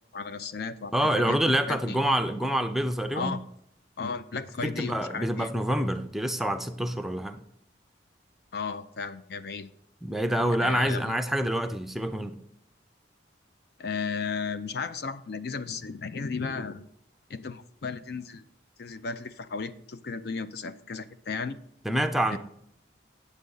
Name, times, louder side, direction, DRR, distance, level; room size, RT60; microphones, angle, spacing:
voice 1, 0.1-2.0 3.1-3.4 4.0-5.5 8.5-9.7 10.6-11.2 13.8-16.9 17.3-18.4 18.8-21.6 22.3-22.4, left 5 dB, 55° left, 12 dB, 0.5 m, -34 dB
voice 2, 0.9-3.4 4.6-7.4 10.0-12.4 21.8-22.4, equal, ahead, 7 dB, 0.4 m, -27 dB
8.3 x 8.2 x 3.9 m, 0.72 s
head